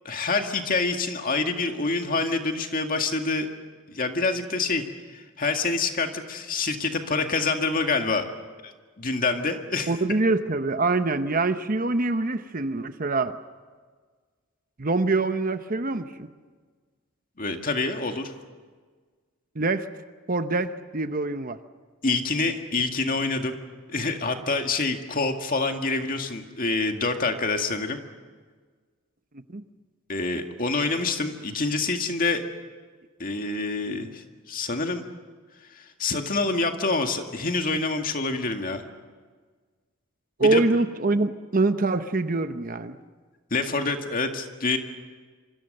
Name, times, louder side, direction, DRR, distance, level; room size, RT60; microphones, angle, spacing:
voice 1, 0.0-3.5 3.9-4.8 5.1-8.3 8.6-8.7 9.0-9.9 17.4-18.3 22.0-23.6 23.9-28.0 30.1-32.4 33.2-35.0 35.7-38.8 40.4-40.6 43.5-44.8, left 3 dB, 40° left, 5 dB, 2.0 m, -26 dB
voice 2, 9.9-13.4 14.8-16.3 19.6-19.9 20.3-21.6 29.5-29.6 40.4-43.0, right 3 dB, 40° right, 10 dB, 0.9 m, -24 dB
27.0 x 25.0 x 6.7 m, 1.5 s
head